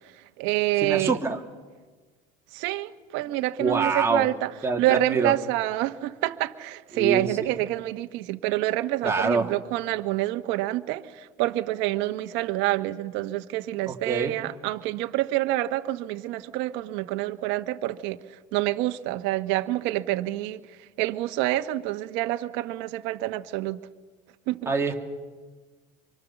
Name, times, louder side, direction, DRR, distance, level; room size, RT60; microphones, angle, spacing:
voice 1, 0.1-1.2 2.5-23.8 24.5-24.7, right 16 dB, 70° right, 1.3 m, -27 dB
voice 2, 0.8-1.4 3.6-4.3 4.6-5.3 6.9-7.5 9.0-9.5 13.9-14.4 24.7-24.9, right 4 dB, 15° right, 2.9 m, -25 dB
26.5 x 24.0 x 7.1 m
supercardioid pair, 120°, 20 cm